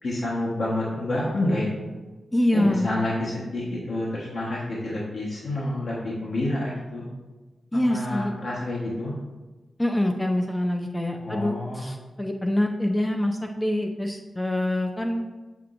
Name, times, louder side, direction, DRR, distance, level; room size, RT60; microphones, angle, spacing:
voice 1, 0.0-1.7 2.5-7.1 7.9-9.1 11.2-11.9, left 1 dB, 65° left, -6 dB, 1.1 m, -28 dB
voice 2, 2.3-3.0 7.7-8.3 9.8-15.3, left 1 dB, 10° left, 3 dB, 0.4 m, -25 dB
6.7 x 5.9 x 2.5 m, 1.2 s
wide cardioid pair, 100°, 0 cm